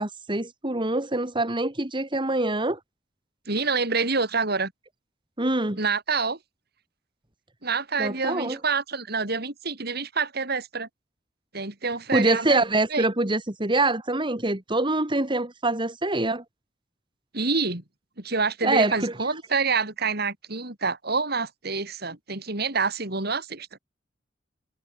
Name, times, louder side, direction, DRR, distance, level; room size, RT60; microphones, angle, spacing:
voice 1, 0.0-2.8 5.4-5.8 8.0-8.6 12.1-16.4 18.6-19.1, right 2 dB, 25° right, 2.5 m, -25 dB
voice 2, 3.5-4.7 5.8-6.4 7.6-10.9 11.5-12.6 12.9-13.1 17.3-17.8 18.2-23.7, right 4 dB, 55° right, 4.5 m, -27 dB
head